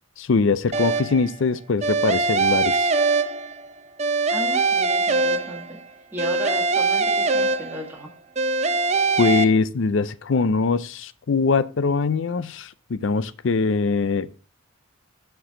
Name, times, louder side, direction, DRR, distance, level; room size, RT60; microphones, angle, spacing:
voice 1, 0.2-2.9 9.2-14.3, left 4 dB, 60° left, 0.5 m, -22 dB
sound 1, 0.7-1.3 1.8-3.7 4.0-5.8 6.2-8.0 8.3-9.4, right 3 dB, 30° right, 0.6 m, -22 dB
voice 2, 4.3-5.8 6.1-8.1, right 2 dB, 10° right, 1.7 m, -35 dB
11.0 x 4.7 x 3.7 m
head